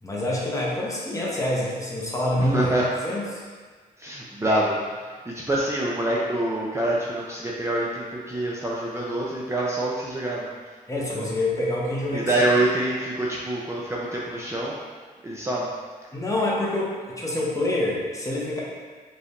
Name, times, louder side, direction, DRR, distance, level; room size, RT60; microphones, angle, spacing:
voice 1, 0.0-2.7 3.0-3.4 10.9-12.3 16.1-18.6, left 1 dB, 20° left, -5 dB, 1.0 m, -26 dB
voice 2, 2.4-2.8 4.0-10.5 12.1-14.8 15.2-15.7, right 1 dB, 15° right, -5 dB, 0.5 m, -26 dB
5.0 x 3.2 x 2.6 m, 1.5 s
cardioid pair, 90°, 16 cm